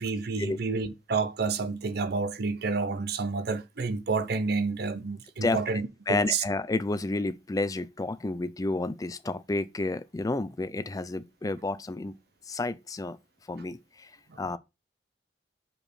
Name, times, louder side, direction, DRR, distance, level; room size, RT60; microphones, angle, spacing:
voice 1, 0.0-6.4 14.3-14.4, right 4 dB, 60° right, 0.6 m, -29 dB
voice 2, 6.1-12.1 12.5-13.2 13.5-14.1 14.4-14.6, left 2 dB, 20° left, 0.4 m, -30 dB
5.3 x 4.7 x 4.3 m
head